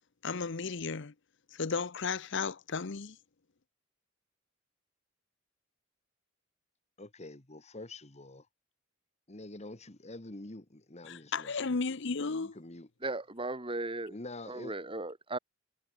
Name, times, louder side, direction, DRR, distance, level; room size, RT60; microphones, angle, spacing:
voice 1, 0.2-1.1 1.5-3.2 11.0-12.6, left 4 dB, 65° left, 0.8 m, -34 dB
voice 2, 7.0-8.5 9.3-11.5 12.2-12.9 14.1-14.7, left 2 dB, 35° left, 1.7 m, -46 dB
voice 3, 13.0-14.1 14.5-15.4, right 2 dB, 25° right, 3.0 m, -36 dB
head